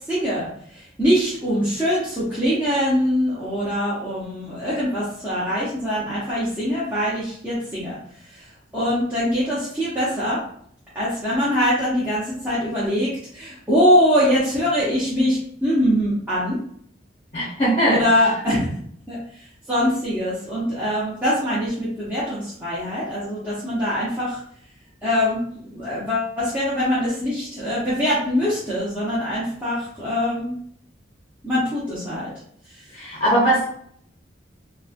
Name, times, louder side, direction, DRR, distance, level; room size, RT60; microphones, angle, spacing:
voice 1, 0.1-8.0 8.3-8.5 8.7-10.4 10.9-16.6 17.9-18.8 19.1-24.4 25.0-30.5 31.4-32.3 32.7-32.8, equal, 10° right, -11 dB, 0.6 m, -23 dB
voice 2, 17.3-18.0 32.9-33.6, right 1 dB, 35° left, -6 dB, 0.6 m, -20 dB
2.9 x 2.1 x 2.4 m, 0.64 s
head